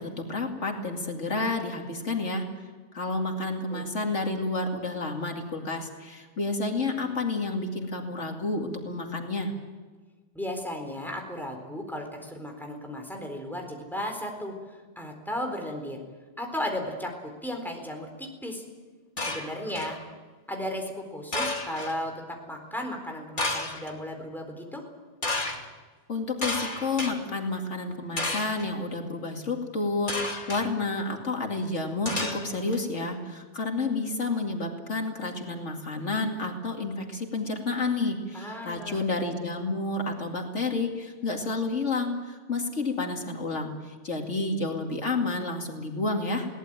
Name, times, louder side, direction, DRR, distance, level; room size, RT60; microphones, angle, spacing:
voice 1, 0.0-2.4 2.9-9.5 26.1-30.2 30.5-46.5, left 3 dB, 80° left, 2 dB, 2.7 m, -30 dB
voice 2, 10.3-14.5 15.0-16.0 16.4-18.6 19.2-20.0 20.5-24.9 38.3-39.0, left 1 dB, ahead, 2 dB, 4.2 m, -35 dB
sound 1, 19.2-20.0 21.3-21.9 23.4-23.9 25.2-25.6 26.4-27.1 28.2-28.6 30.1-30.6 32.0-32.8, left 2 dB, 40° left, 2.7 m, -31 dB
21.5 x 18.0 x 9.0 m, 1.4 s
omnidirectional pair, 1.2 m